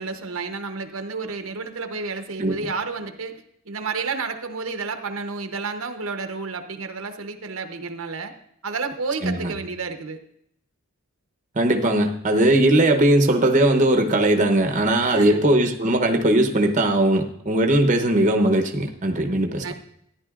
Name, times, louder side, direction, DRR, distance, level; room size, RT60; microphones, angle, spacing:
voice 1, 0.0-3.4 3.6-8.3 8.6-10.2 15.0-15.4 19.6-19.7, right 4 dB, 65° right, 6 dB, 0.9 m, -31 dB
voice 2, 11.6-19.6, right 1 dB, 35° right, 3 dB, 0.9 m, -19 dB
13.5 x 10.5 x 2.5 m, 0.74 s
head